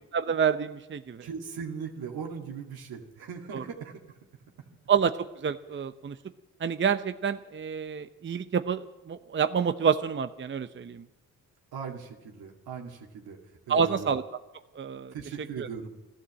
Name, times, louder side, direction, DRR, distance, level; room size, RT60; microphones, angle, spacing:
voice 1, 0.1-1.3 3.5-3.6 4.9-5.1 5.4-6.2 6.6-11.0 13.7-14.2 14.8-15.1 15.6-15.7, right 7 dB, 30° right, 10 dB, 0.8 m, -28 dB
voice 2, 1.2-3.9 11.7-13.4 13.7-14.1 15.1-15.9, right 6 dB, 70° right, 0 dB, 2.1 m, -39 dB
13.5 x 13.0 x 7.6 m, 1.0 s
hypercardioid pair, 50°, 39 cm